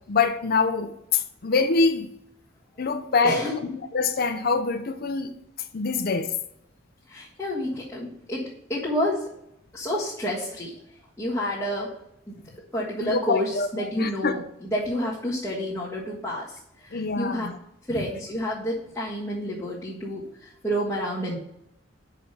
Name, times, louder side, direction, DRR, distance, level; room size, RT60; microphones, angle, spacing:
voice 1, 0.1-2.1 2.8-5.3 5.7-6.3 13.0-14.3 16.9-17.5, left 4 dB, 50° left, 8 dB, 0.6 m, -25 dB
voice 2, 3.2-3.7 7.1-9.3 9.7-10.7 11.2-11.9 12.3-12.4 12.7-17.5 17.9-21.4, equal, 15° left, -9 dB, 1.6 m, -29 dB
5.8 x 4.9 x 6.6 m, 0.77 s
head